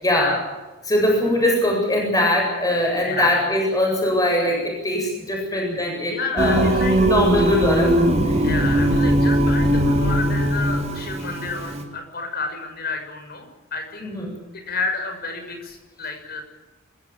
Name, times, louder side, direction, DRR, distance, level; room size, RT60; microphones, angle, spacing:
voice 1, 0.0-0.4 0.8-6.7 7.0-8.3 14.0-14.3, left 1 dB, 20° left, 0 dB, 7.9 m, -21 dB
voice 2, 3.0-3.5 5.5-5.6 6.1-7.0 8.4-13.5 13.7-14.1 14.7-16.4, left 4 dB, 50° left, 5 dB, 6.3 m, -30 dB
Singing, 6.4-11.8, right 1 dB, 35° right, 3.6 m, -19 dB
27.0 x 16.0 x 9.0 m, 1.2 s
head